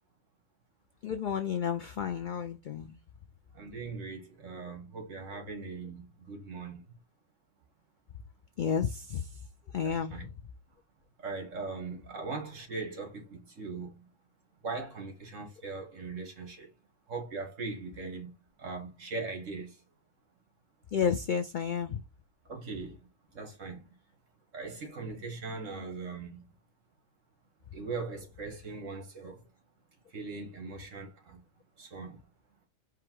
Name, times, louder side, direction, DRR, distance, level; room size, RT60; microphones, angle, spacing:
voice 1, 1.0-3.0 5.3-5.4 8.6-9.4 9.7-10.3 20.9-22.0, left 7 dB, 75° left, 0.4 m, -31 dB
voice 2, 3.5-6.8 9.8-10.3 11.2-14.1 14.6-16.7 17.1-18.3 18.6-19.8 22.5-23.0 23.3-23.9 24.5-26.4 27.7-29.4 30.1-31.4 31.8-32.2, right 4 dB, 70° right, 1.9 m, -40 dB
5.0 x 2.4 x 4.4 m
omnidirectional pair, 1.4 m